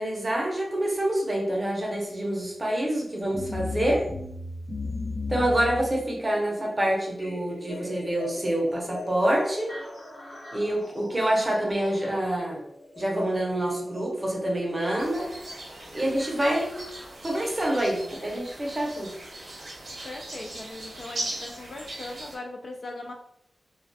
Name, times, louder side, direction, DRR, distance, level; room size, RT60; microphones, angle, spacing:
voice 1, 0.0-4.1 5.3-9.7 10.5-12.6 13.0-15.3 15.9-16.7 17.2-19.1, right 1 dB, 25° right, -1 dB, 0.6 m, -26 dB
sound 1, 3.2-19.1 20.3-20.4 21.2-21.3 22.0-22.1, left 3 dB, 70° left, 0.8 m, -39 dB
sound 2, 15.0-22.4, right 2 dB, 65° right, 0.7 m, -39 dB
voice 2, 20.0-23.1, left 2 dB, 55° left, 1 dB, 0.3 m, -39 dB
2.2 x 2.2 x 2.6 m, 0.77 s
wide cardioid pair, 110°, 0 cm